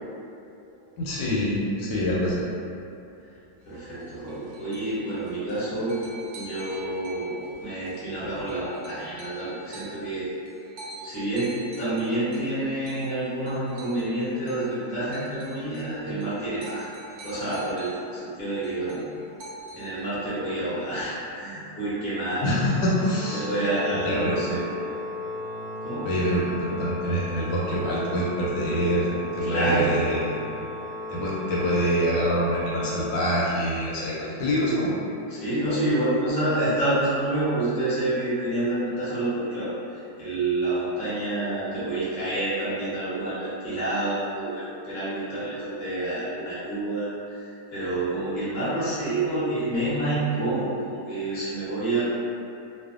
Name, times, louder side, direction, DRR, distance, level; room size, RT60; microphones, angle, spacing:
voice 1, 1.0-2.4 22.4-23.5 24.0-24.6 26.0-29.1 29.3-30.4 31.1-35.0, equal, 85° left, -6 dB, 1.3 m, -25 dB
voice 2, 3.6-6.0 6.3-10.3 11.0-16.9 17.2-19.0 19.7-22.5 23.3-24.6 25.8-26.0 29.4-29.9 35.3-52.0, right 1 dB, 50° left, -12 dB, 1.2 m, -28 dB
sound 1, 3.6-18.1 18.4-20.0, right 1 dB, 85° right, 1.3 m, -45 dB
Organ, 22.9-33.8, left 2 dB, 15° right, 0.4 m, -35 dB
3.2 x 2.0 x 2.4 m, 2.6 s
omnidirectional pair, 2.0 m